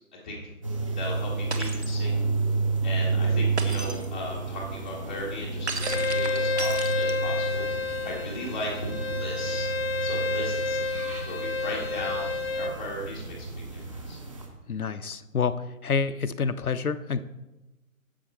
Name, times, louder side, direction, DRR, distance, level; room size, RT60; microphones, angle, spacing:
sound 1, 0.6-14.5, right 3 dB, 25° right, 0.9 m, -31 dB
voice 1, 1.0-2.1 2.8-9.7 10.0-10.8 11.3-12.3 12.6-13.5 13.7-13.8 14.1-14.2, left 1 dB, 5° left, -7 dB, 0.8 m, -37 dB
Shatter, 1.5-2.0 3.6-4.1 5.7-7.4, right 4 dB, 50° right, 0.9 m, -34 dB
Bowed string instrument, 5.8-12.7, left 3 dB, 45° left, 0.7 m, -30 dB
voice 2, 14.7-15.5 15.8-17.2, left 5 dB, 80° left, 11 dB, 0.7 m, -27 dB
10.0 x 7.5 x 4.1 m, 1.0 s
figure-of-eight pair, 145°, 43 cm